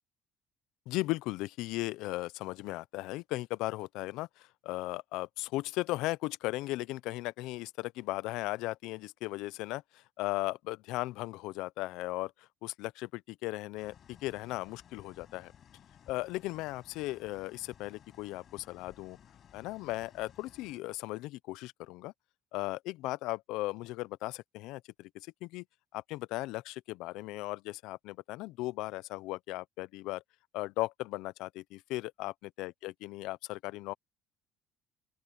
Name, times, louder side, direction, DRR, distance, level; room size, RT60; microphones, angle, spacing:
voice 1, 0.9-15.5 16.1-19.2 19.5-22.1 22.5-25.6 25.9-30.2 30.5-33.9, left 19 dB, 75° left, 0.5 m, -37 dB
sound 1, 13.8-20.8, left 9 dB, 35° left, 6.6 m, -58 dB
open air
cardioid pair, 165°, 0 cm